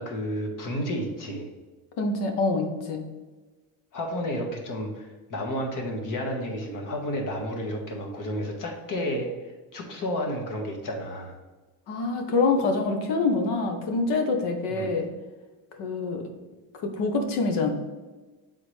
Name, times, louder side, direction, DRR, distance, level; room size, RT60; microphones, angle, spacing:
voice 1, 0.0-1.5 3.9-11.4 14.7-14.9, equal, 50° left, 2 dB, 1.5 m, -31 dB
voice 2, 2.0-3.0 11.9-15.1 15.7-16.2 16.7-17.7, left 3 dB, 80° left, 4 dB, 1.2 m, -25 dB
7.3 x 3.9 x 3.3 m, 1.2 s
cardioid pair, 115°, 40 cm